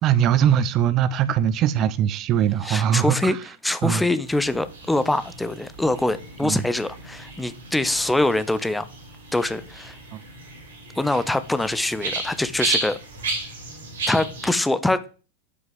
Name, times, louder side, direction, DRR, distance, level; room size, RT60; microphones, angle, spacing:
voice 1, 0.0-3.4 3.8-4.0 6.4-6.6 10.1-10.2 11.1-11.2, right 9 dB, 35° right, 0.8 m, -21 dB
voice 2, 2.6-3.4 3.6-8.9 9.3-9.9 10.9-13.0 14.1-15.1, left 1 dB, 5° left, 0.9 m, -24 dB
sound 1, 4.3-14.5, right 2 dB, 65° right, 4.9 m, -34 dB
9.6 x 6.3 x 7.5 m
figure-of-eight pair, 90°, 0 cm